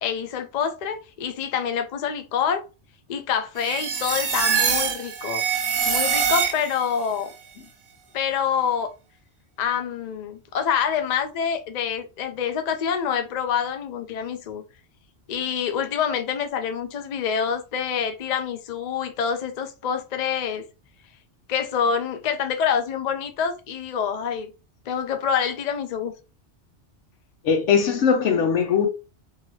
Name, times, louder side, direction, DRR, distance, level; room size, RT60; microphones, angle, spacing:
voice 1, 0.0-2.6 3.1-5.4 5.8-7.3 8.1-8.9 9.6-14.6 15.3-20.6 21.5-24.5 24.9-26.1, left 7 dB, 50° left, 0.5 m, -26 dB
sound 1, 3.6-6.9, right 7 dB, 60° right, 0.8 m, -24 dB
voice 2, 27.4-28.9, left 6 dB, 85° left, 1.1 m, -20 dB
2.8 x 2.7 x 3.0 m
omnidirectional pair, 1.2 m